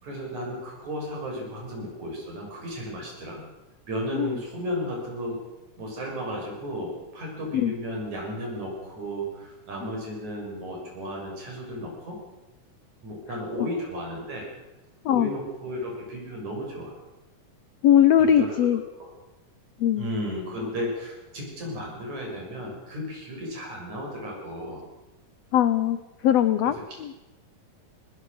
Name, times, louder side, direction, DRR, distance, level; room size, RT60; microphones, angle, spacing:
voice 1, 0.0-3.4 3.9-5.4 5.8-12.2 13.0-14.5 15.1-16.9 18.2-19.1 20.0-24.8 26.6-27.0, equal, 55° right, -1 dB, 7.6 m, -34 dB
voice 2, 17.8-18.8 19.8-20.1 25.5-26.0 26.2-26.7 27.0-27.1, left 10 dB, 75° left, 12 dB, 1.5 m, -20 dB
20.5 x 20.0 x 6.6 m, 1.0 s
omnidirectional pair, 3.9 m